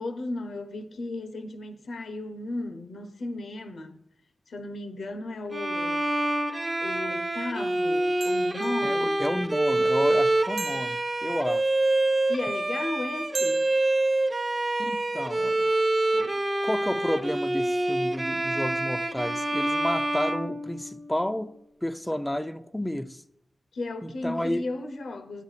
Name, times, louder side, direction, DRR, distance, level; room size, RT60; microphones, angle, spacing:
voice 1, 0.0-4.0 4.5-6.1 6.8-9.2 12.3-13.7 23.7-25.4, left 2 dB, 80° left, 0.8 m, -35 dB
Bowed string instrument, 5.5-21.2, right 1 dB, 30° right, 0.8 m, -26 dB
sound 1, 8.2-8.9 10.6-11.7 13.3-14.3, right 5 dB, 85° right, 0.4 m, -40 dB
voice 2, 8.8-11.7 14.8-15.8 16.1-21.6 21.8-23.2 24.0-24.7, left 1 dB, 10° left, 0.5 m, -31 dB
10.5 x 8.2 x 4.0 m
cardioid pair, 60°, 0 cm